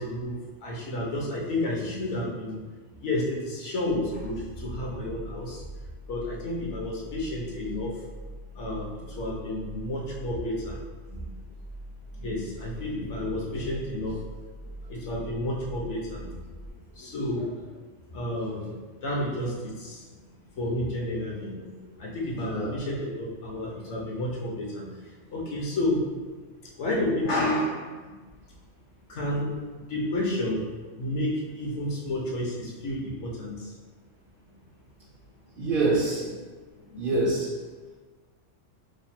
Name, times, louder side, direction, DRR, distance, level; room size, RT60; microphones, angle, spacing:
voice 1, 0.0-2.6 3.0-5.6 6.1-8.0 8.5-10.8 11.1-11.3 12.1-14.2 14.6-17.7 18.1-18.7 19.0-20.2 20.6-26.0 26.8-28.2 29.1-30.7 31.0-33.7 34.5-34.6 36.8-37.1, left 1 dB, 70° left, -3 dB, 1.1 m, -31 dB
sound 1, 4.0-16.7, right 1 dB, 40° left, 0.5 m, -43 dB
voice 2, 22.4-22.8 35.5-36.3 37.0-37.6, right 2 dB, 60° right, -3 dB, 0.6 m, -26 dB
3.1 x 2.2 x 4.1 m, 1.4 s
omnidirectional pair, 1.3 m